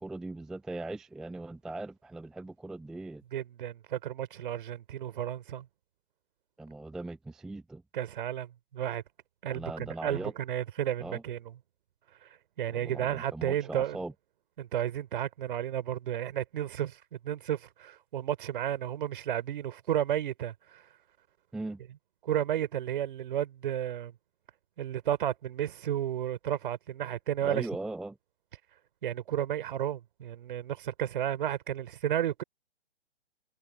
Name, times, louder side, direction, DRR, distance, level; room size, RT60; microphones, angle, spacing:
voice 1, 0.0-3.2 6.6-7.8 9.5-10.3 11.0-11.2 12.7-14.1 21.5-21.8 27.4-28.2, right 2 dB, ahead, 0.5 m, -39 dB
voice 2, 3.3-5.7 7.9-9.0 9.4-11.4 12.6-14.0 14.6-17.0 17.2-20.8 22.2-24.1 24.8-27.7 29.0-32.4, right 11 dB, 50° right, 3.8 m, -32 dB
figure-of-eight pair, 130°, 33 cm